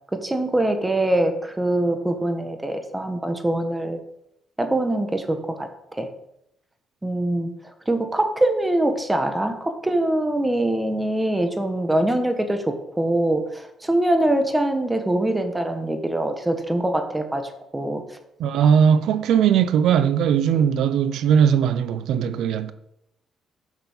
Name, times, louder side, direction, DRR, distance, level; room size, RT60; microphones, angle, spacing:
voice 1, 0.1-4.0 4.6-6.1 7.0-7.5 7.9-18.0 18.6-18.7, right 1 dB, 10° right, 1.2 m, -23 dB
voice 2, 18.4-22.7, right 8 dB, 80° right, 0.7 m, -19 dB
7.3 x 5.8 x 7.2 m
cardioid pair, 90°, 0 cm